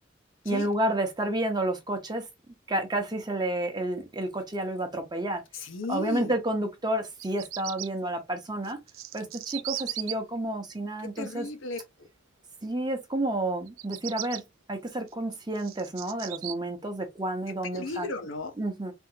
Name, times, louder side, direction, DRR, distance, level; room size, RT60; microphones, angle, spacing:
voice 1, 0.4-2.3 2.7-5.4 5.9-8.8 9.1-11.5 12.6-14.4 14.7-18.1 18.6-18.9, right 1 dB, 20° right, 0.8 m, -30 dB
voice 2, 5.5-6.3 11.0-11.8 17.7-18.5, left 2 dB, 80° left, 0.8 m, -35 dB
Bird vocalization bird call bird song, 7.0-7.9 8.6-10.1 13.7-14.4 15.1-16.5, right 14 dB, 90° right, 0.4 m, -37 dB
3.5 x 2.5 x 2.7 m
head